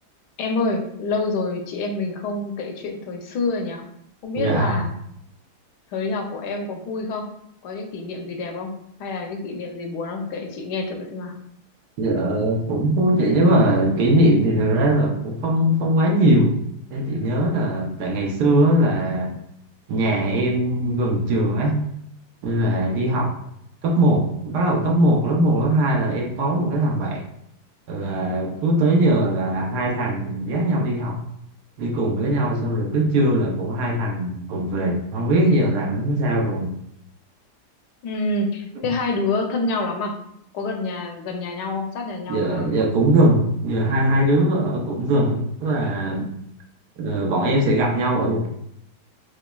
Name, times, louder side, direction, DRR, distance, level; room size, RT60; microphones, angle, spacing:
voice 1, 0.4-3.8 4.2-4.9 5.9-7.3 7.6-8.7 9.0-11.3 38.0-40.1 40.5-42.7, left 3 dB, 90° left, 3 dB, 1.2 m, -27 dB
voice 2, 4.4-4.8 12.0-16.6 16.9-19.4 19.9-21.8 22.4-23.4 23.8-27.3 27.9-31.2 31.8-36.7 42.3-46.3 47.0-48.5, right 1 dB, 75° right, 0 dB, 1.2 m, -20 dB
4.9 x 2.3 x 2.2 m, 0.73 s
omnidirectional pair, 1.8 m